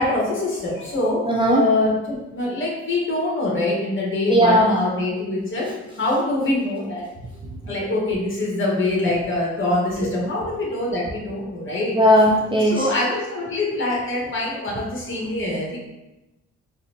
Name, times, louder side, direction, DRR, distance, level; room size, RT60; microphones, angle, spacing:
voice 1, 0.0-1.2 1.5-5.7 6.0-7.0 7.6-12.0 12.7-15.8, left 2 dB, 40° left, -4 dB, 1.4 m, -24 dB
voice 2, 1.3-1.6 4.3-4.8 11.9-12.9, equal, 15° right, -3 dB, 0.5 m, -17 dB
4.1 x 2.6 x 2.8 m, 1.0 s
cardioid pair, 90°, 30 cm